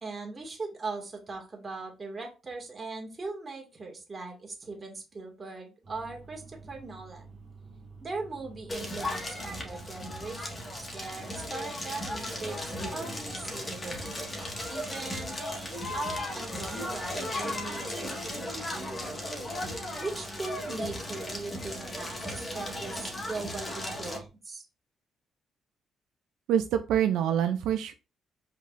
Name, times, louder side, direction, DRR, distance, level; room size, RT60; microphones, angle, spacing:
voice 1, 0.0-7.3 8.0-14.1 14.7-19.1 20.0-24.7, right 3 dB, 30° right, 1 dB, 2.0 m, -40 dB
sound 1, 5.8-24.3, right 4 dB, 45° right, 1.8 m, -50 dB
Crackle, 8.7-24.2, left 1 dB, 25° left, 1.6 m, -36 dB
voice 2, 26.5-27.9, right 9 dB, 85° right, 7 dB, 0.4 m, -26 dB
5.2 x 4.0 x 2.5 m, 0.29 s
cardioid pair, 90°, 0 cm